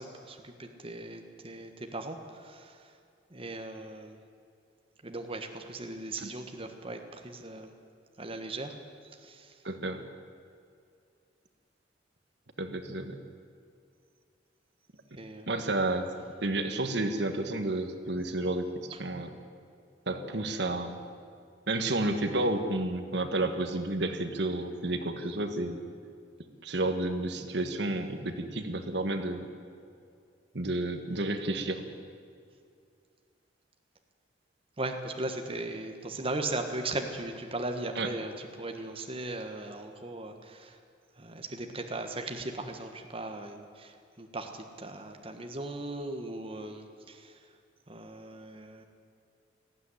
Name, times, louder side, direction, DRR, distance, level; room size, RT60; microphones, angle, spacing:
voice 1, 0.0-2.9 3.3-4.2 5.0-7.7 8.2-8.7 9.2-9.5 15.1-15.5 34.8-40.8 41.2-47.4 47.9-48.8, right 2 dB, 30° right, 4 dB, 1.4 m, -38 dB
voice 2, 9.6-10.0 12.6-13.2 15.5-16.0 16.4-18.7 19.0-19.3 20.1-21.0 21.7-25.8 26.6-29.5 30.5-31.8 37.9-38.1, right 2 dB, 60° right, 7 dB, 1.5 m, -31 dB
19.0 x 14.5 x 9.9 m, 2.4 s
head